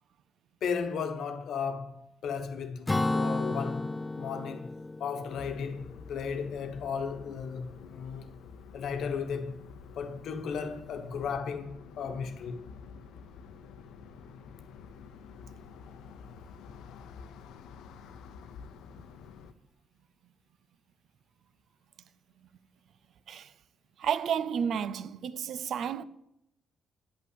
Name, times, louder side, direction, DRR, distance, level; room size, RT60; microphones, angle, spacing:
voice 1, 0.6-4.7 5.0-8.3 8.7-9.6 10.0-12.6, left 6 dB, 70° left, 1.1 m, -35 dB
Acoustic guitar / Strum, 2.9-6.5, left 2 dB, 15° left, 0.3 m, -33 dB
sound 1, 5.3-19.5, left 6 dB, 85° left, 0.7 m, -49 dB
voice 2, 24.0-26.0, right 7 dB, 65° right, 0.5 m, -31 dB
9.1 x 5.8 x 7.8 m
cardioid pair, 90°, 0 cm